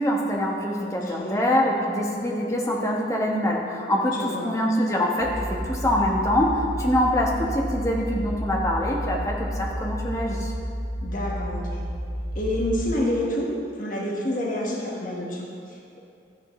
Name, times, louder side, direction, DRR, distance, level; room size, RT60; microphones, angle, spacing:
voice 1, 0.0-10.5, left 1 dB, 20° left, -2 dB, 1.2 m, -24 dB
voice 2, 0.8-1.4 4.1-4.5 11.0-11.9 12.3-16.0, left 1 dB, 50° left, -3 dB, 1.5 m, -29 dB
sound 1, 5.2-12.9, equal, 60° right, 2.0 m, -31 dB
13.0 x 10.0 x 3.2 m, 2.4 s
head